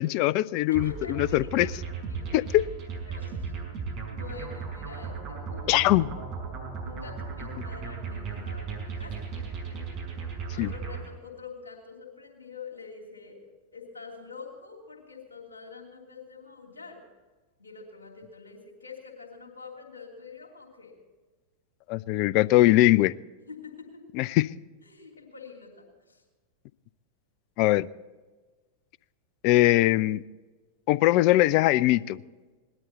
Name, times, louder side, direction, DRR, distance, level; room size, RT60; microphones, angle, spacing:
voice 1, 0.0-1.7 2.3-2.6 5.7-6.1 10.6-10.7 21.9-23.1 24.2-24.5 27.6-27.9 29.4-30.2 30.9-32.2, left 16 dB, 45° left, 21 dB, 0.4 m, -21 dB
voice 2, 0.7-1.7 2.1-2.4 3.1-3.8 4.1-5.9 6.8-9.2 10.5-13.4 13.7-17.0 17.6-21.0 23.5-24.0 24.8-26.2, left 5 dB, 75° left, 0 dB, 3.0 m, -45 dB
sound 1, 0.7-11.1, right 5 dB, 40° right, 5.7 m, -36 dB
19.0 x 12.0 x 4.1 m, 1.3 s
figure-of-eight pair, 90°, 0 cm